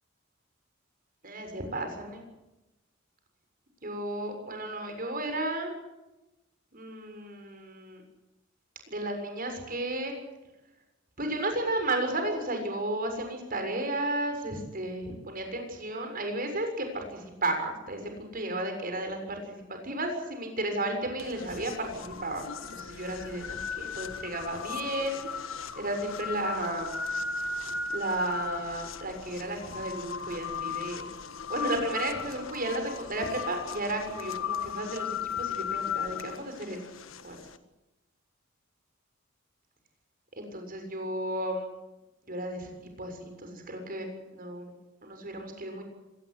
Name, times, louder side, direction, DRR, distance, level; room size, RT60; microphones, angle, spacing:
voice 1, 1.2-2.2 3.8-5.7 6.7-8.0 8.9-10.1 11.2-25.2 25.8-26.9 27.9-31.0 31.5-36.8 37.2-37.4 40.4-41.7 42.3-44.1 44.3-44.7 45.0-45.8, right 1 dB, 45° right, 5 dB, 7.1 m, -33 dB
sound 1, 21.2-37.6, left 6 dB, 90° left, 1.5 m, -37 dB
25.0 x 20.0 x 8.0 m, 0.98 s
head